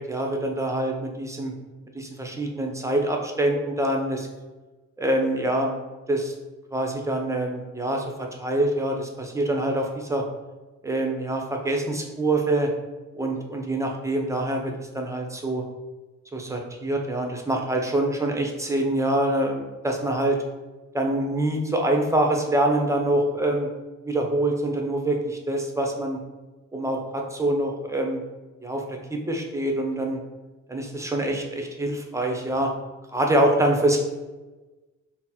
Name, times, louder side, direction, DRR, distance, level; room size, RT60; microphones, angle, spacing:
voice 1, 0.0-1.5 1.9-4.3 5.0-5.8 6.1-6.3 6.7-8.0 8.3-10.2 10.8-12.7 13.1-15.6 16.3-20.4 20.9-23.7 24.0-26.2 26.7-28.2 28.6-30.2 30.7-32.7 33.1-34.0, right 1 dB, 10° right, 1 dB, 0.6 m, -25 dB
3.7 x 2.0 x 4.2 m, 1.2 s
cardioid pair, 90°, 30 cm